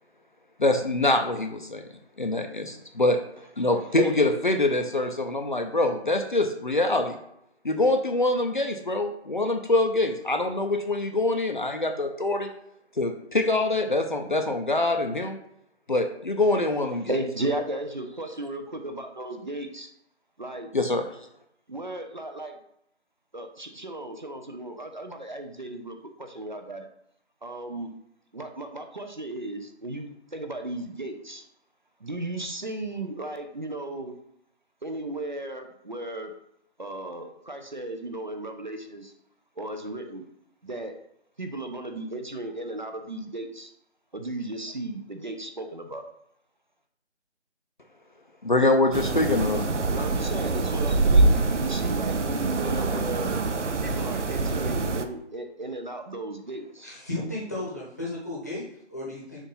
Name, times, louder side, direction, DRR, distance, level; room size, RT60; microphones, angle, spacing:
voice 1, 0.6-1.8 2.2-3.2 3.6-7.2 7.6-12.5 13.0-15.4 15.9-17.2 20.7-21.0 48.4-49.7, left 2 dB, 45° left, 4 dB, 0.6 m, -24 dB
voice 2, 17.1-19.9 20.4-20.7 21.7-22.6 23.3-26.9 27.4-27.9 28.3-31.4 32.0-34.2 34.8-36.3 36.8-39.1 39.6-40.2 40.6-40.9 41.4-43.7 44.1-46.1 49.9-53.4 53.8-56.9, right 1 dB, 40° right, 5 dB, 0.7 m, -35 dB
sound 1, 48.9-55.0, right 3 dB, 90° right, 0.9 m, -24 dB
voice 3, 56.8-59.4, left 2 dB, 15° left, -5 dB, 1.0 m, -34 dB
7.1 x 2.7 x 5.5 m, 0.76 s
figure-of-eight pair, 175°, 35 cm